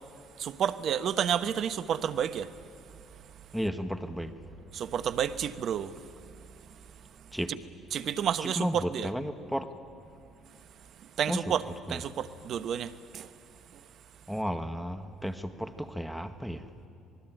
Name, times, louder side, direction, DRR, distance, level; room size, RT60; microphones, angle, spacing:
voice 1, 0.4-2.5 4.7-6.0 7.5-7.6 7.9-9.1 11.2-11.6 11.9-13.3, right 9 dB, 60° right, 1.0 m, -30 dB
voice 2, 3.5-4.3 7.3-7.5 8.4-9.7 11.3-11.4 11.9-12.0 14.3-16.6, equal, ahead, 1.5 m, -33 dB
26.5 x 19.5 x 9.1 m
hypercardioid pair, 65°, 0 cm